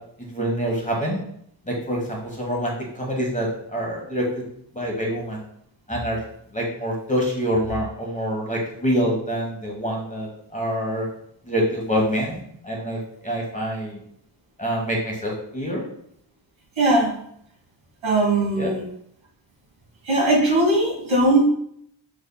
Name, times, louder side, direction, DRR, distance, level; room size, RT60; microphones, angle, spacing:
voice 1, 0.2-1.2 1.7-4.4 4.7-5.4 5.9-6.2 6.5-11.1 11.5-14.0 14.6-15.8 18.6-18.7, equal, 15° left, -2 dB, 1.2 m, -26 dB
voice 2, 16.8-17.1 18.0-18.8 20.1-21.5, right 1 dB, 80° right, -1 dB, 1.5 m, -19 dB
6.9 x 3.4 x 2.2 m, 0.69 s
wide cardioid pair, 90°, 45 cm